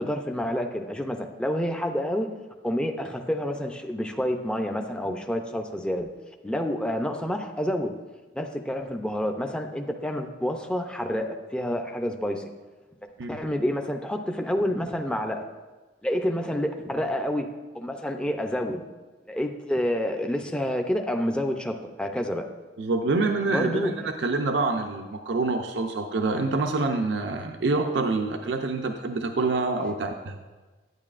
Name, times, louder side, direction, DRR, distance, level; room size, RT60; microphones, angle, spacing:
voice 1, 0.0-2.3 2.6-6.1 6.4-7.9 8.3-12.5 13.3-15.4 16.0-18.8 19.3-22.5 23.5-24.1, equal, 5° left, 3 dB, 0.4 m, -28 dB
voice 2, 22.8-30.4, right 3 dB, 70° right, 4 dB, 0.5 m, -26 dB
10.5 x 8.9 x 2.5 m, 1.3 s
head